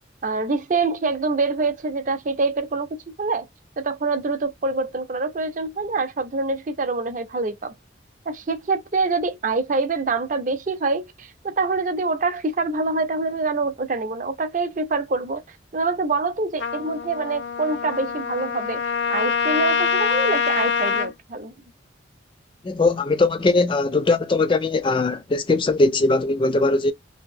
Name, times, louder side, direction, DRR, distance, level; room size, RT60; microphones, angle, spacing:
voice 1, 0.2-3.5 3.8-7.7 8.3-15.4 15.7-18.8 19.1-21.5, right 3 dB, 40° right, 0.5 m, -25 dB
Trumpet, 16.6-21.1, left 6 dB, 75° left, 0.6 m, -24 dB
voice 2, 22.6-26.9, left 3 dB, 25° left, 0.3 m, -20 dB
2.8 x 2.6 x 2.5 m
head